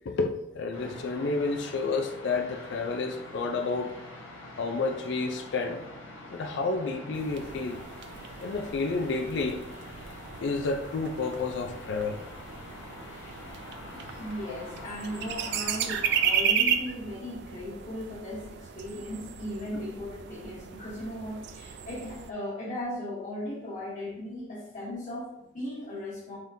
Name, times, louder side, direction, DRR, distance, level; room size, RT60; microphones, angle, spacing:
voice 1, 0.0-3.9 4.6-5.8 6.3-7.8 8.4-9.6 10.4-12.2, left 3 dB, 60° left, 0.4 m, -30 dB
sound 1, 0.7-16.4, left 1 dB, 80° left, 0.9 m, -45 dB
sound 2, 7.1-22.3, right 8 dB, 55° right, 0.3 m, -34 dB
voice 2, 13.9-26.4, left 1 dB, 40° left, 1.5 m, -37 dB
3.7 x 3.6 x 2.6 m
head